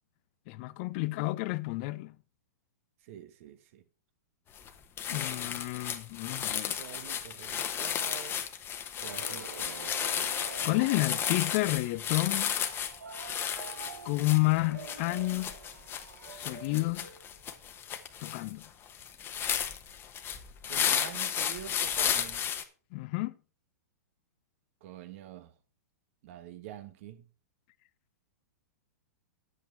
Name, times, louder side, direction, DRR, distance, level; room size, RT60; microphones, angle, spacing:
voice 1, 0.5-2.2 5.1-6.8 10.6-12.5 14.0-15.5 16.3-17.1 18.2-18.6 22.9-23.3, left 21 dB, 45° left, 0.6 m, -30 dB
voice 2, 3.1-3.8 5.1-5.6 6.8-8.4 9.0-10.0 20.6-22.4 24.8-25.5 26.2-27.2, right 11 dB, 50° right, 1.3 m, -46 dB
sound 1, 4.5-4.7 5.0-22.6, left 8 dB, 25° left, 1.2 m, -33 dB
sound 2, 9.0-17.7, right 5 dB, 80° right, 1.1 m, -47 dB
9.4 x 8.2 x 4.6 m
hypercardioid pair, 115°, 9 cm